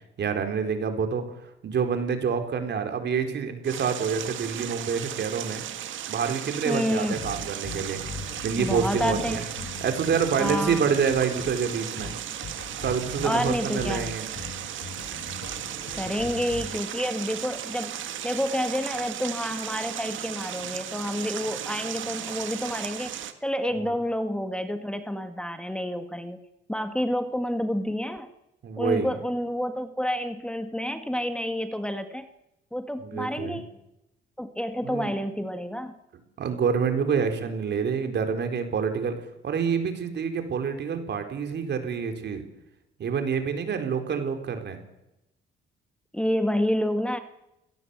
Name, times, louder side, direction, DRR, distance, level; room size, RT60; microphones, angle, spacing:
voice 1, 0.2-1.3 1.6-5.6 6.1-8.0 8.4-9.4 9.8-12.1 12.8-14.3 23.8-23.9 28.6-29.1 33.0-33.6 34.8-35.1 36.4-39.2 39.4-42.4 43.0-44.8, right 6 dB, 60° right, 6 dB, 4.4 m, -27 dB
sound 1, 3.6-23.3, right 10 dB, 75° right, 2.0 m, -36 dB
voice 2, 6.7-7.2 8.6-9.7 10.4-10.9 13.2-14.1 15.9-18.0 18.2-26.4 26.7-28.3 28.8-32.3 32.7-33.7 34.4-35.9 46.1-47.2, equal, 5° left, 8 dB, 1.8 m, -29 dB
sound 2, 7.2-16.7, left 4 dB, 65° left, 7.0 m, -40 dB
29.5 x 18.0 x 8.4 m, 0.90 s
cardioid pair, 90°, 20 cm